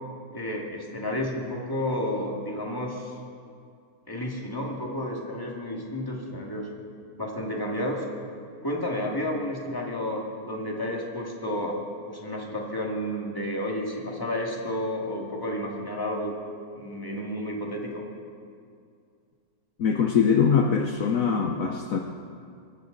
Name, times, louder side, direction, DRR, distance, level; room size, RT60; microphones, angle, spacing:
voice 1, 0.3-3.1 4.1-6.7 7.2-8.0 8.6-11.8 12.1-16.3 16.7-18.0, left 1 dB, 15° left, -2 dB, 2.2 m, -31 dB
voice 2, 19.8-22.0, left 6 dB, 65° left, 3 dB, 1.2 m, -22 dB
24.0 x 14.0 x 4.0 m, 2.3 s
omnidirectional pair, 1.7 m